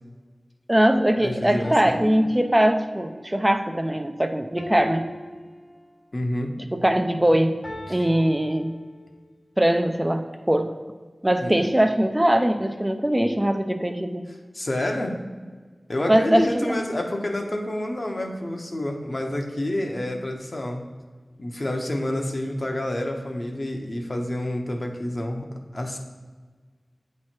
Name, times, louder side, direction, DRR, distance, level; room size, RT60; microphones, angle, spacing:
voice 1, 0.7-5.1 6.7-7.6 7.9-8.8 9.6-10.7 11.2-14.3 16.1-16.8, right 1 dB, 15° right, 6 dB, 0.4 m, -21 dB
voice 2, 1.2-2.0 6.1-6.6 7.9-8.0 11.4-11.6 14.5-15.2 15.9-20.8 21.4-25.5 25.7-26.0, left 1 dB, 50° left, 2 dB, 0.8 m, -28 dB
sound 1, 1.6-3.2 4.6-6.2 7.6-9.3, left 1 dB, 90° left, 1.2 m, -39 dB
8.5 x 3.1 x 4.3 m, 1.5 s
wide cardioid pair, 50°, 0 cm